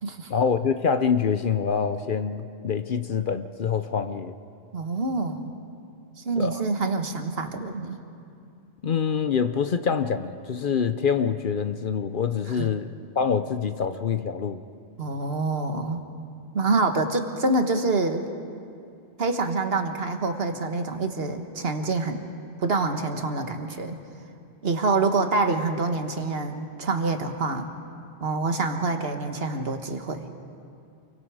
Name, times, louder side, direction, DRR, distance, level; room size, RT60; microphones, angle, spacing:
voice 1, 0.3-4.3 6.4-6.6 8.8-12.9 13.2-14.6, left 6 dB, 55° left, 10 dB, 0.8 m, -25 dB
voice 2, 4.7-5.5 6.2-8.0 12.6-12.7 15.0-16.0 16.5-18.2 19.2-22.2 22.6-24.0 24.6-27.7 28.2-30.3, right 3 dB, 60° right, 6 dB, 1.6 m, -26 dB
28.5 x 23.5 x 4.9 m, 2.5 s
omnidirectional pair, 1.1 m